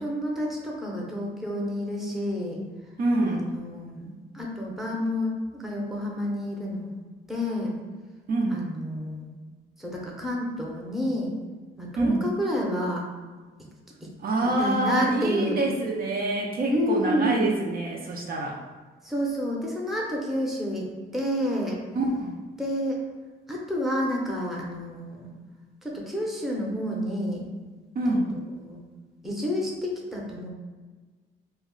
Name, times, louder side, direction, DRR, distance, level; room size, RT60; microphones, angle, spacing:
voice 1, 0.0-2.6 3.2-7.0 7.3-7.7 8.5-9.3 9.8-11.3 11.8-13.1 14.0-14.1 14.6-15.6 16.7-17.5 19.0-20.9 21.1-21.8 22.6-23.0 23.5-25.4 25.8-27.5 28.1-28.2 28.6-28.8 29.2-30.5, equal, ahead, -3 dB, 0.6 m, -29 dB
voice 2, 3.0-3.5 8.3-8.6 12.0-12.2 14.2-18.6 22.0-22.4 28.0-28.3, right 2 dB, 50° right, -1 dB, 0.5 m, -26 dB
2.3 x 2.1 x 3.7 m, 1.4 s
cardioid pair, 90°, 20 cm